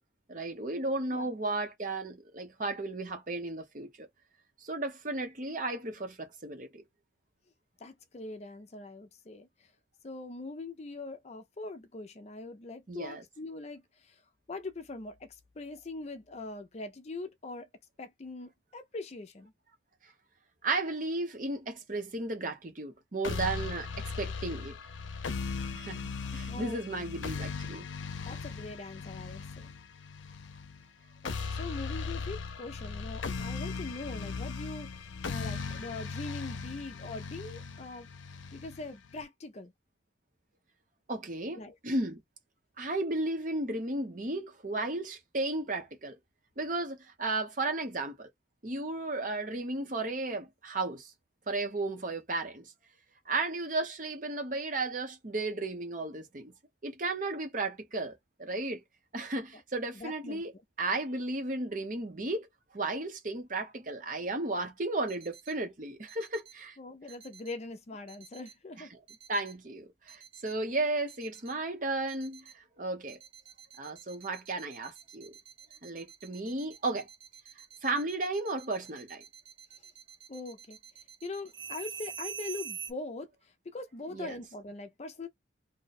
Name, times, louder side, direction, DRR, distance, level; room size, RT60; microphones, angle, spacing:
voice 1, 0.3-4.1 4.6-6.8 12.9-13.2 20.6-24.7 25.7-27.9 41.1-41.6 41.8-42.2 42.8-46.1 46.6-48.3 48.6-51.1 51.5-52.7 53.3-56.5 56.8-58.1 58.4-58.8 59.1-60.5 60.8-62.5 62.7-66.8 69.3-73.2 73.8-75.3 75.8-77.1 77.8-79.2 84.1-84.4, right 2 dB, 45° right, 0.8 m, -34 dB
voice 2, 7.8-9.7 10.0-14.2 14.5-17.7 18.0-19.5 26.5-26.8 28.3-29.7 31.2-38.1 38.5-39.7 41.6-41.7 59.9-60.4 66.8-68.9 80.3-80.8 81.2-85.3, left 3 dB, 35° left, 0.4 m, -42 dB
sound 1, 23.2-39.2, left 4 dB, 80° left, 0.6 m, -38 dB
sound 2, 65.1-65.5 66.1-66.5 67.1-67.5 68.1-68.5 69.1-69.5 70.1-70.5 71.1-71.5 72.1-72.5 73.1-82.9, right 7 dB, 75° right, 1.1 m, -46 dB
2.7 x 2.2 x 4.0 m
head